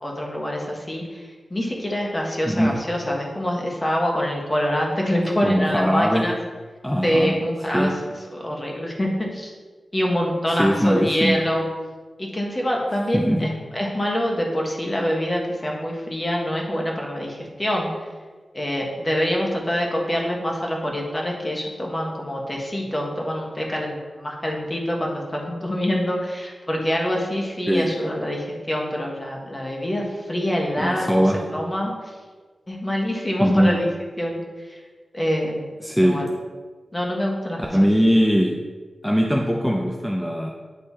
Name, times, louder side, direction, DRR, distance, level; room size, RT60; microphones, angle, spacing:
voice 1, 0.0-6.3 7.0-7.9 8.3-9.5 9.9-11.7 12.2-17.9 18.5-31.2 31.5-32.1 32.7-33.9 34.2-34.8 35.1-35.7 36.0-36.3 36.9-37.7, equal, 25° left, -1 dB, 1.5 m, -25 dB
voice 2, 2.5-2.8 5.4-6.3 6.8-7.4 7.7-8.0 10.5-11.4 13.1-13.6 27.7-27.9 30.8-31.4 33.4-33.8 35.8-36.3 37.7-38.6 39.0-40.5, equal, 5° left, 0 dB, 0.6 m, -20 dB
9.5 x 3.3 x 4.3 m, 1.4 s
cardioid pair, 65°, 0 cm